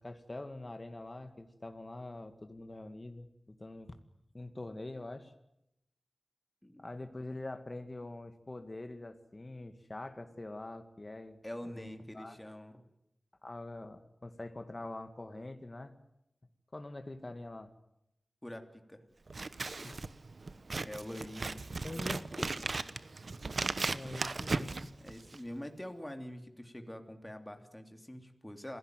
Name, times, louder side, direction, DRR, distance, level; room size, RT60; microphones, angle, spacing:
voice 1, 0.0-3.9 4.3-5.3 6.8-11.4 11.7-12.4 13.4-16.0 16.7-17.7 19.8-20.1 21.8-22.6 23.5-23.6 23.9-24.9, left 2 dB, 35° left, 8 dB, 2.1 m, -44 dB
voice 2, 11.4-12.9 18.4-19.0 20.8-21.6 25.0-28.8, left 1 dB, 10° left, 5 dB, 3.0 m, -45 dB
Scissors, 19.3-25.5, right 3 dB, 60° right, 1.1 m, -37 dB
27.5 x 17.0 x 9.3 m, 0.82 s
wide cardioid pair, 80°, 0 cm